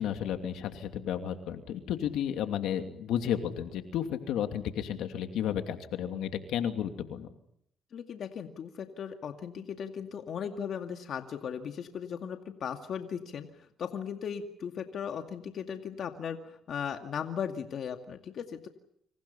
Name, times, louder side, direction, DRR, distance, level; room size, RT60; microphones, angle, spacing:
voice 1, 0.0-7.3, left 9 dB, 85° left, 6 dB, 2.7 m, -32 dB
voice 2, 7.9-13.5 13.8-18.7, left 7 dB, 65° left, 5 dB, 2.2 m, -37 dB
29.5 x 27.0 x 5.7 m, 0.73 s
cardioid pair, 90°, 0 cm